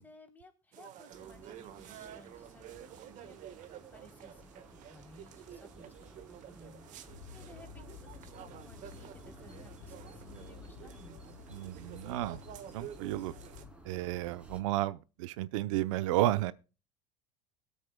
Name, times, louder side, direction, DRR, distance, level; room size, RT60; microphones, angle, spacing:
voice 1, 0.0-11.4, left 1 dB, 10° left, 3.2 m, -58 dB
sound 1, 0.7-13.6, right 11 dB, 50° right, 1.4 m, -50 dB
sound 2, 1.1-14.6, right 1 dB, 5° right, 2.8 m, -56 dB
sound 3, 7.1-13.7, left 7 dB, 80° left, 2.3 m, -52 dB
voice 2, 11.5-12.4 12.7-13.3 13.8-16.5, right 15 dB, 80° right, 0.7 m, -32 dB
21.5 x 8.3 x 2.2 m
supercardioid pair, 105°, 16 cm